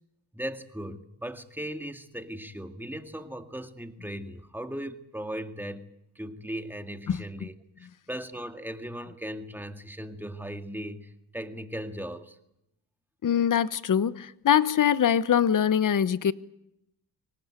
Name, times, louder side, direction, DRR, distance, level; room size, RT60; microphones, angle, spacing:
voice 1, 0.3-5.9 6.2-12.4, equal, 5° right, 2.1 m, -38 dB
voice 2, 13.2-16.3, left 9 dB, 45° left, 1.1 m, -23 dB
24.0 x 18.5 x 9.1 m
cardioid pair, 70°, 42 cm